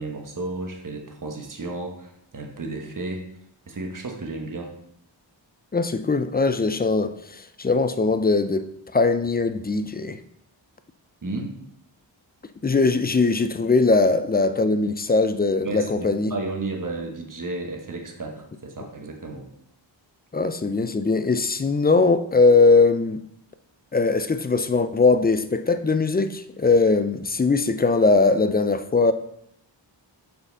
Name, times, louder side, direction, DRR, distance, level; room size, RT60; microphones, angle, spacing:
voice 1, 0.0-3.2 3.7-4.7 11.2-11.5 15.6-19.4, right 2 dB, 45° right, 1.0 m, -33 dB
voice 2, 5.7-10.2 12.6-16.3 20.3-23.2 23.9-29.1, left 3 dB, 20° left, 0.4 m, -20 dB
5.7 x 4.2 x 4.0 m
wide cardioid pair, 50°, 46 cm